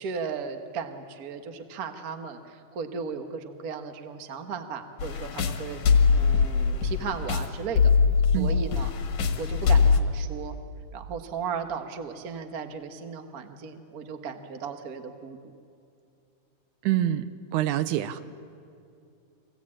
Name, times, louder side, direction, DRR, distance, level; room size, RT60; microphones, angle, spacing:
voice 1, 0.0-7.9 8.3-8.9 9.4-10.6 10.9-15.5, right 5 dB, 60° right, 6 dB, 0.9 m, -36 dB
sound 1, 5.0-10.0, left 5 dB, 70° left, 2.6 m, -22 dB
voice 2, 16.9-17.3 17.5-18.2, right 13 dB, 80° right, 12 dB, 2.1 m, -25 dB
24.0 x 16.5 x 8.7 m, 2.5 s
omnidirectional pair, 3.6 m